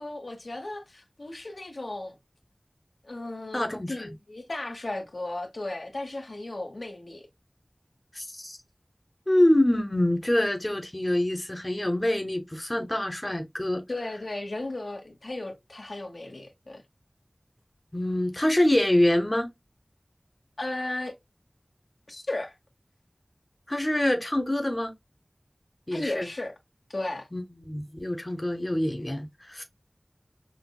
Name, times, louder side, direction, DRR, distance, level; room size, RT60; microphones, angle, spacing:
voice 1, 0.0-2.2 3.0-7.2 13.9-16.8 20.6-21.1 22.1-22.5 25.9-26.5 26.9-27.3, left 2 dB, 85° left, 1.0 m, -35 dB
voice 2, 3.5-4.1 8.1-8.6 9.3-13.8 17.9-19.5 23.7-24.9 25.9-26.3 27.3-29.6, left 1 dB, 30° left, 0.8 m, -25 dB
5.8 x 2.2 x 2.2 m
wide cardioid pair, 45°, 0 cm